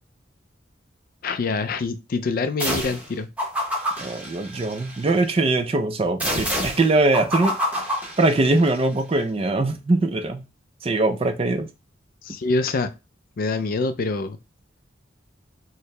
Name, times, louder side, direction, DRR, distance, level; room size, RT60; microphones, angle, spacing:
voice 1, 1.2-3.3 12.2-12.9 13.4-14.4, left 3 dB, 50° left, 0.3 m, -25 dB
sound 1, 2.6-3.1 3.4-5.1 6.2-8.8, equal, 5° right, 0.8 m, -28 dB
voice 2, 4.0-7.6 8.2-10.4 10.8-11.7, right 2 dB, 30° right, 0.4 m, -21 dB
4.4 x 2.0 x 3.2 m
head